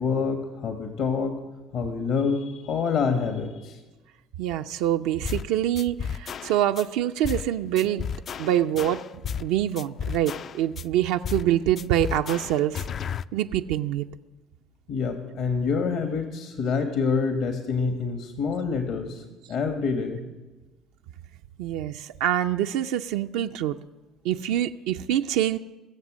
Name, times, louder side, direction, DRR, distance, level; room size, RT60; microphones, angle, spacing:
voice 1, 0.0-1.4 1.7-3.8 14.9-19.2 19.5-20.3, left 5 dB, 65° left, 5 dB, 1.5 m, -27 dB
voice 2, 4.4-8.1 8.4-9.0 9.4-12.9 13.3-14.1 21.6-23.8 24.2-25.6, right 11 dB, 75° right, 6 dB, 0.4 m, -25 dB
sound 1, 5.2-5.5 5.8-6.8 7.2-7.5 7.8-9.5 9.8-10.8 11.2-11.5 11.8-13.2, left 7 dB, 50° left, 0.4 m, -33 dB
22.0 x 7.4 x 6.2 m, 1.2 s
supercardioid pair, 75°, 0 cm